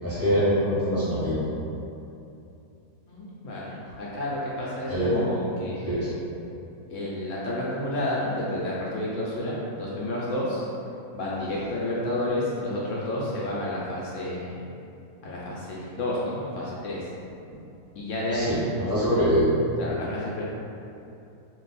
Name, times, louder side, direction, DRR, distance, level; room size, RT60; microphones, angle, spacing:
voice 1, 0.0-1.4 4.9-5.2 5.8-6.1 18.3-19.5, equal, 10° left, -12 dB, 0.7 m, -24 dB
voice 2, 3.1-6.1 6.9-10.7 11.1-14.6 15.2-17.0 18.0-18.6 19.8-20.4, left 1 dB, 70° left, -6 dB, 0.8 m, -30 dB
2.6 x 2.3 x 4.0 m, 2.7 s
omnidirectional pair, 1.7 m